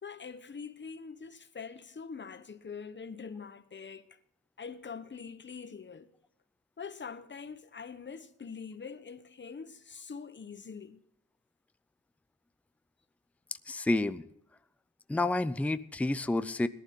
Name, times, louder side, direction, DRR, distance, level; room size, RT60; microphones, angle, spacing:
voice 1, 0.0-4.2 4.6-6.1 6.8-11.0, left 5 dB, 35° left, 0.9 m, -44 dB
voice 2, 13.7-14.2 15.1-16.7, left 2 dB, 5° left, 0.4 m, -29 dB
18.0 x 11.5 x 3.7 m
wide cardioid pair, 140°, 31 cm